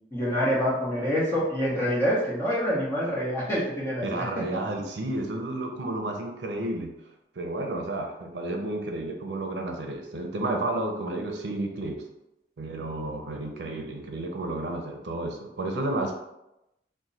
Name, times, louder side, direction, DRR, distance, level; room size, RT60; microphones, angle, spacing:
voice 1, 0.1-4.2, equal, 15° left, -7 dB, 0.9 m, -26 dB
voice 2, 4.0-6.9 7.4-12.0 12.6-16.1, right 2 dB, 85° right, 2 dB, 0.5 m, -31 dB
3.0 x 2.2 x 3.9 m, 0.89 s
head